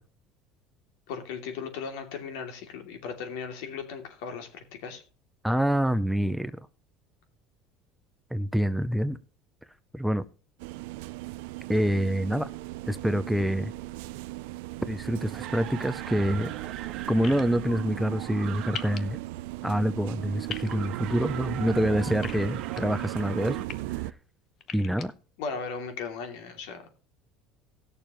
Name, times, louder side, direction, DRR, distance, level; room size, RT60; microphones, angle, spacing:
voice 1, 1.1-5.0 25.4-26.9, left 5 dB, 80° left, 2.7 m, -37 dB
voice 2, 5.4-6.5 8.3-9.2 9.9-10.2 11.7-12.5 12.9-13.7 14.9-16.5 17.1-19.2 19.6-24.0 24.7-25.1, equal, ahead, 0.5 m, -26 dB
sound 1, 10.6-24.1, right 18 dB, 85° right, 0.4 m, -37 dB
sound 2, 15.0-19.2 20.5-23.7, right 11 dB, 50° right, 1.2 m, -42 dB
sound 3, 17.2-17.4 18.7-19.0 20.5-20.7 22.2-22.8 23.4-23.7 24.6-25.1, left 8 dB, 35° left, 0.8 m, -38 dB
18.5 x 6.8 x 3.0 m
cardioid pair, 150°, 0 cm